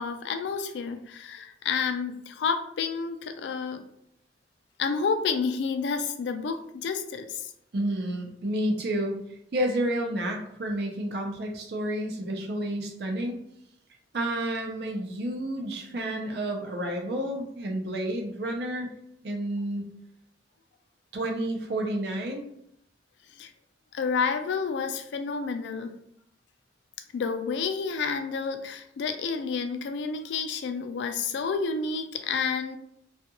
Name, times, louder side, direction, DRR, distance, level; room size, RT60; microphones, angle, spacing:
voice 1, 0.0-3.8 4.8-7.5 23.4-23.5 23.9-25.9 27.1-32.8, left 5 dB, 75° left, 7 dB, 0.3 m, -30 dB
voice 2, 7.7-9.2 9.5-13.4 14.1-18.9 19.2-19.9 21.1-22.4, right 1 dB, 65° right, 1 dB, 0.5 m, -30 dB
2.4 x 2.3 x 2.9 m, 0.73 s
head